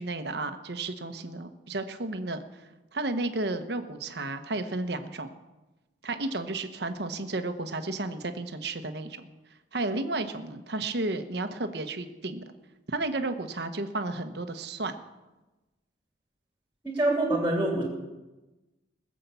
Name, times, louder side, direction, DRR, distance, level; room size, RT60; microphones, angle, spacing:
voice 1, 0.0-2.6 2.9-5.3 6.0-9.3 9.7-12.4 12.9-15.0, right 2 dB, 60° right, 8 dB, 1.1 m, -32 dB
voice 2, 16.8-17.8, right 1 dB, 10° right, 0 dB, 2.7 m, -25 dB
20.5 x 7.5 x 7.0 m, 1.1 s
head